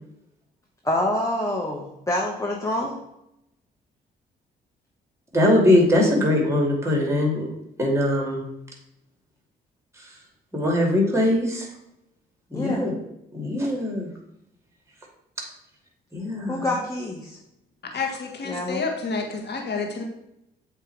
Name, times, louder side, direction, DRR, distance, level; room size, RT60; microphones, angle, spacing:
voice 1, 0.8-3.0 12.5-12.9 16.5-17.4 18.4-18.9, left 1 dB, 15° left, -2 dB, 1.2 m, -27 dB
voice 2, 5.3-7.5 7.8-8.4 10.5-11.7 12.5-12.9 13.3-14.1 16.1-16.7, left 1 dB, 15° right, -1 dB, 2.5 m, -21 dB
voice 3, 17.9-20.0, left 4 dB, 55° left, 3 dB, 1.5 m, -29 dB
7.8 x 3.0 x 4.6 m, 0.84 s
supercardioid pair, 60°, 21 cm